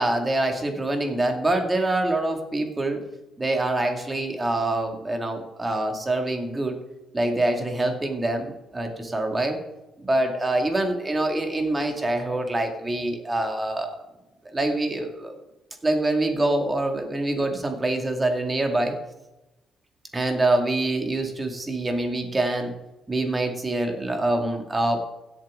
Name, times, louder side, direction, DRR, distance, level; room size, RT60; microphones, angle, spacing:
voice 1, 0.0-3.0 3.4-6.8 7.1-9.6 10.0-14.0 14.5-15.3 15.8-18.9 20.1-22.7 23.1-25.0, right 2 dB, 20° right, 3 dB, 2.2 m, -25 dB
16.0 x 7.5 x 3.8 m, 0.98 s
cardioid pair, 90°, 0 cm